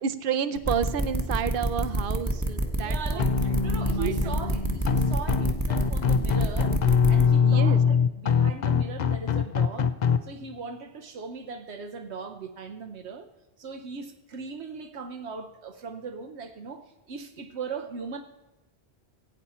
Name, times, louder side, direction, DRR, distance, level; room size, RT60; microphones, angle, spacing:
voice 1, 0.0-4.3 7.4-7.8, right 7 dB, 60° right, 12 dB, 0.8 m, -31 dB
sound 1, 0.6-7.2, right 1 dB, 15° right, 1.0 m, -27 dB
voice 2, 2.6-9.9 10.2-13.3 13.6-18.2, right 5 dB, 75° right, 6 dB, 1.1 m, -38 dB
sound 2, 3.2-10.2, left 6 dB, 50° left, 0.6 m, -23 dB
16.5 x 8.4 x 4.3 m, 0.99 s
omnidirectional pair, 1.1 m